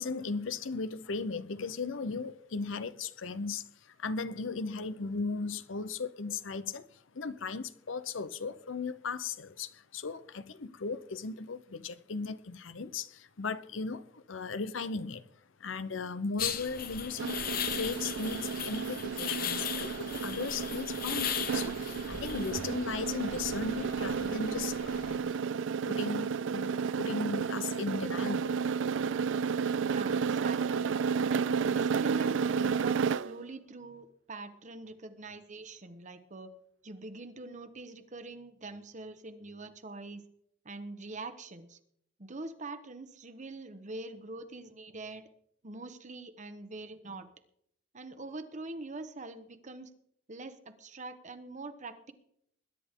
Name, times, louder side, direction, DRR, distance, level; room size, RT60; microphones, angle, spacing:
voice 1, 0.0-15.2 15.6-17.4 17.7-25.5 25.9-28.6, left 4 dB, 90° left, 0.8 m, -37 dB
sound 1, 16.4-25.2, left 7 dB, 50° left, 1.1 m, -38 dB
sound 2, 17.2-33.4, right 6 dB, 70° right, 0.4 m, -32 dB
voice 2, 29.8-30.9 31.3-36.5 36.8-40.2 40.6-41.8 42.2-45.2 45.6-47.3 47.9-49.9 50.3-52.1, right 2 dB, 40° right, 1.2 m, -44 dB
21.0 x 10.5 x 3.7 m
head